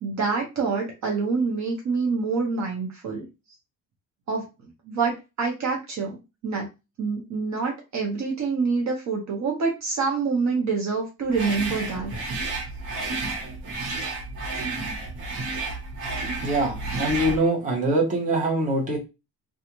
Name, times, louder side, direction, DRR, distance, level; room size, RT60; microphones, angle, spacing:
voice 1, 0.0-3.2 4.3-4.5 4.8-6.2 6.4-6.7 7.0-12.1, right 4 dB, 50° right, 0 dB, 0.7 m, -26 dB
sound 1, 11.3-17.4, right 3 dB, 75° right, 1.0 m, -31 dB
voice 2, 16.4-19.0, right 1 dB, 20° right, -3 dB, 0.9 m, -23 dB
2.5 x 2.4 x 2.9 m, 0.26 s
cardioid pair, 170°, 38 cm